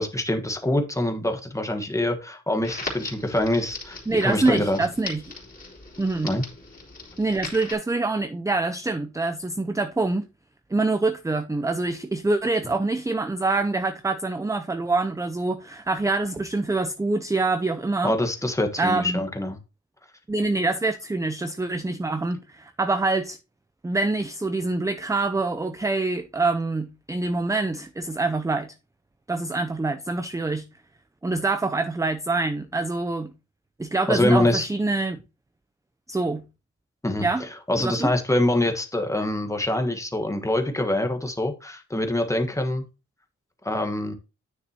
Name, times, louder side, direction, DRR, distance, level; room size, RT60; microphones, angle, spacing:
voice 1, 0.0-4.8 6.2-6.4 18.0-19.6 34.1-34.7 37.0-37.3 37.7-42.8 43.6-44.1, left 1 dB, 10° left, 1.3 m, -25 dB
Crackle, 2.6-7.7, left 3 dB, 30° left, 3.3 m, -39 dB
voice 2, 4.1-5.2 6.0-6.4 7.2-10.3 10.7-18.1 18.8-19.2 20.3-23.4 23.8-28.7 29.3-30.6 31.2-33.3 33.8-35.2 36.1-36.4 37.2-37.4 37.8-38.1, right 3 dB, 10° right, 0.5 m, -25 dB
9.6 x 6.4 x 2.9 m
wide cardioid pair, 125°, 30 cm